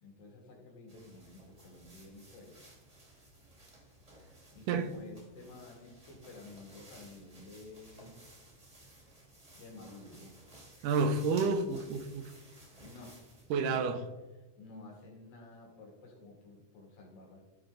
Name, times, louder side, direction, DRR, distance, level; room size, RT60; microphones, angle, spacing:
voice 1, 0.0-2.6 4.5-8.2 9.5-10.4 12.8-13.2 13.5-14.1 14.6-17.4, left 2 dB, 90° left, 4.1 m, -52 dB
sound 1, 0.9-13.5, right 1 dB, 15° right, 1.3 m, -57 dB
voice 2, 4.7-5.0 10.8-12.2 13.5-14.0, right 4 dB, 80° right, 2.3 m, -30 dB
14.0 x 5.7 x 3.9 m
omnidirectional pair, 3.9 m